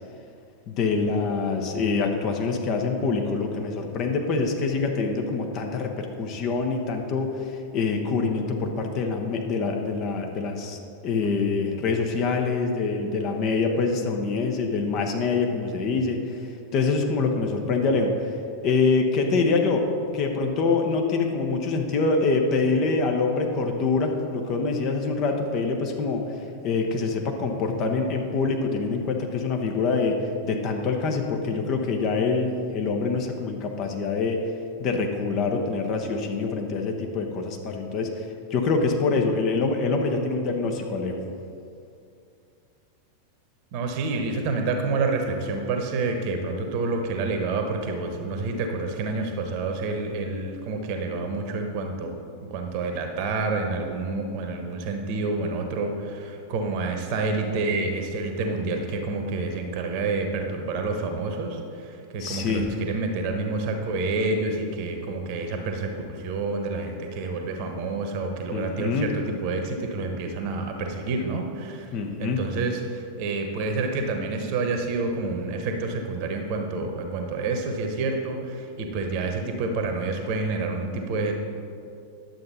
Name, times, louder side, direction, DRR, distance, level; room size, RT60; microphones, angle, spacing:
voice 1, 0.7-16.4 16.7-18.3 18.6-19.9 20.1-26.2 26.6-34.4 34.8-38.2 38.5-41.2 62.2-62.7 68.5-69.1 71.9-72.4, left 4 dB, 40° left, 3 dB, 1.0 m, -25 dB
voice 2, 43.7-52.2 52.5-71.9 72.2-81.3, right 3 dB, 45° right, 4 dB, 1.2 m, -28 dB
10.5 x 7.5 x 4.2 m, 2.5 s
figure-of-eight pair, 90°, 0 cm